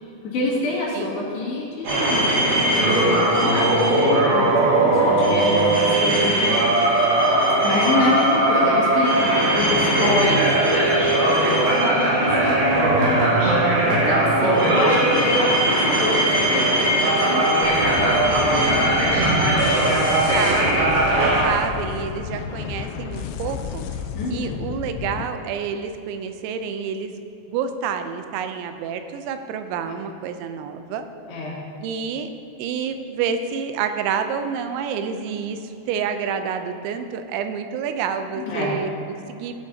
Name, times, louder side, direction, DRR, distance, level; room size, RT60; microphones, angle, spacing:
voice 1, 0.2-2.5 2.7-6.3 7.6-10.4 10.7-12.3 12.6-13.7 14.1-17.6 17.9-19.3 24.1-24.6 31.3-31.6 38.4-38.7, left 2 dB, 65° left, -6 dB, 4.5 m, -27 dB
sound 1, 1.8-21.4, right 1 dB, 65° right, 4.7 m, -19 dB
voice 2, 9.9-10.5 20.1-23.8 24.3-31.1 31.8-32.3 32.6-39.5, right 7 dB, 90° right, 8 dB, 3.1 m, -28 dB
sound 2, 17.6-25.3, left 8 dB, 85° left, 2.8 m, -32 dB
17.5 x 9.9 x 2.8 m, 2.7 s
omnidirectional pair, 5.2 m